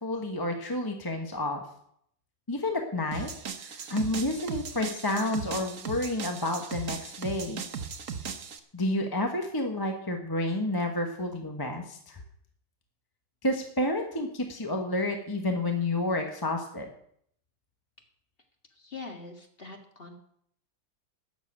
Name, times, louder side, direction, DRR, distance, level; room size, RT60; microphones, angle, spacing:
voice 1, 0.0-1.6 2.5-3.3 3.6-7.6 8.7-12.2 13.4-16.9, left 1 dB, 15° left, 3 dB, 1.1 m, -30 dB
sound 1, 3.1-8.6, right 6 dB, 50° right, 1.3 m, -38 dB
voice 2, 18.7-20.1, left 3 dB, 30° left, 3 dB, 1.9 m, -43 dB
13.0 x 7.0 x 8.8 m, 0.68 s
omnidirectional pair, 2.0 m